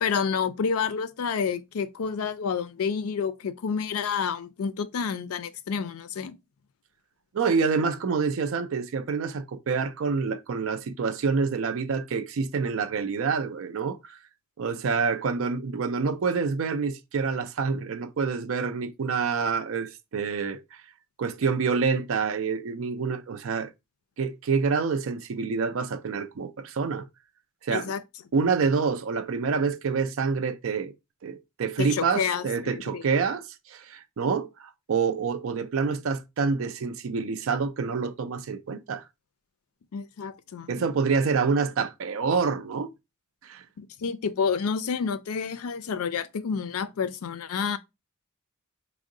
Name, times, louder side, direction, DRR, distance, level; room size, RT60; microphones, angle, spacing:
voice 1, 0.0-6.4 27.7-28.0 31.8-33.0 39.9-40.7 43.8-47.8, left 6 dB, 80° left, 0.4 m, -29 dB
voice 2, 7.3-14.2 14.6-20.6 21.2-23.7 24.2-27.0 27.6-27.9 28.3-30.9 31.2-39.0 40.7-42.9 43.4-43.6, right 5 dB, 65° right, 0.4 m, -27 dB
3.6 x 2.0 x 3.7 m
head